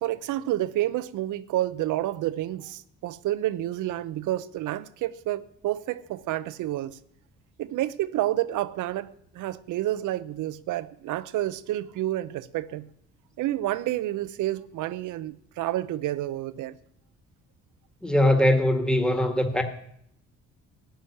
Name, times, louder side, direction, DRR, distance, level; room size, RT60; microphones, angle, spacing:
voice 1, 0.0-7.0 7.6-12.9 13.4-16.8, right 14 dB, 85° right, 0.7 m, -29 dB
voice 2, 18.0-19.6, left 1 dB, 5° left, 1.8 m, -21 dB
13.5 x 6.3 x 9.9 m
cardioid pair, 90°, 30 cm